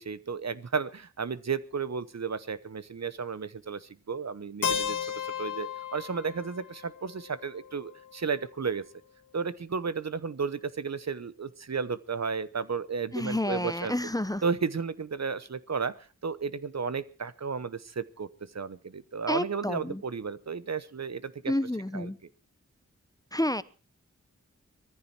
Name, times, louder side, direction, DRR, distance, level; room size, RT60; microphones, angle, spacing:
voice 1, 0.0-8.8 9.3-13.9 14.4-15.9 16.2-21.6 21.9-22.1, right 5 dB, 60° right, 16 dB, 1.0 m, -33 dB
Keyboard (musical), 4.6-8.5, left 7 dB, 85° left, 2.0 m, -35 dB
voice 2, 13.1-14.4 19.3-20.0 21.5-22.2 23.3-23.6, left 1 dB, 10° left, 16 dB, 0.8 m, -30 dB
19.0 x 14.5 x 4.5 m, 0.35 s
cardioid pair, 50°, 31 cm